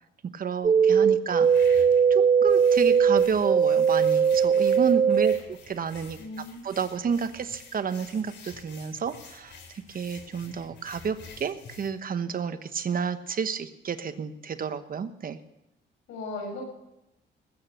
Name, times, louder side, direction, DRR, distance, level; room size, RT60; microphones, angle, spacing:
voice 1, 0.3-1.8 2.1-15.4, right 6 dB, 45° right, 10 dB, 1.2 m, -31 dB
sound 1, 0.6-5.4, right 6 dB, 25° right, 0.5 m, -20 dB
sound 2, 1.4-11.9, left 5 dB, 65° left, 3.3 m, -49 dB
voice 2, 6.2-6.7 16.1-16.6, left 2 dB, 85° left, 1 dB, 6.7 m, -37 dB
20.0 x 9.0 x 6.6 m, 0.90 s
cardioid pair, 90°, 20 cm